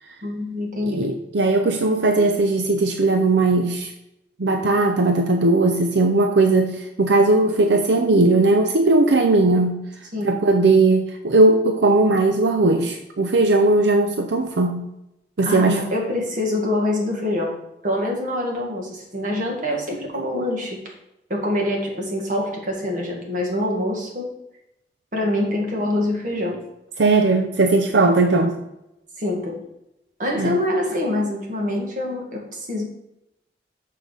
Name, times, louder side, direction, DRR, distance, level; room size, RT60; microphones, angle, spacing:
voice 1, 0.2-1.1 10.1-10.3 15.5-20.8 21.3-24.3 25.1-26.6 28.3-28.5 29.2-29.6 30.2-32.8, left 1 dB, 50° right, 0 dB, 1.9 m, -25 dB
voice 2, 0.8-3.9 4.4-9.9 10.2-14.9 15.4-15.8 27.0-28.6 30.3-30.6, right 2 dB, 85° right, 5 dB, 0.6 m, -18 dB
6.6 x 5.6 x 5.0 m, 0.88 s
head